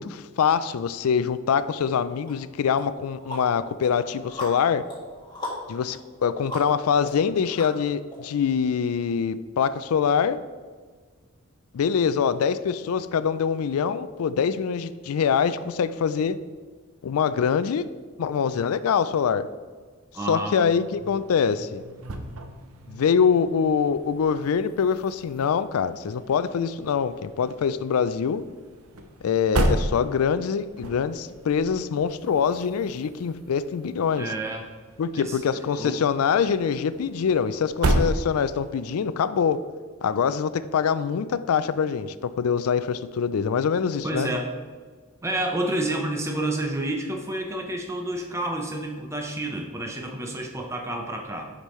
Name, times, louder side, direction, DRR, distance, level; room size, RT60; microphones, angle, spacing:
voice 1, 0.0-4.9 5.7-10.4 11.7-16.4 17.0-17.9 18.2-19.5 20.3-21.8 22.9-28.4 29.2-34.3 35.0-39.6 40.0-44.3, left 6 dB, 85° left, 15 dB, 0.4 m, -24 dB
sound 1, 2.2-2.3 2.8-8.2, left 1 dB, 20° left, 1.6 m, -38 dB
voice 2, 20.1-20.6 34.2-34.7 35.1-36.0 44.0-44.5 45.2-51.4, right 1 dB, 15° right, 2 dB, 0.7 m, -29 dB
sound 2, 20.8-38.9, right 1 dB, 80° right, 0.7 m, -33 dB
9.7 x 5.2 x 3.1 m, 1.5 s
head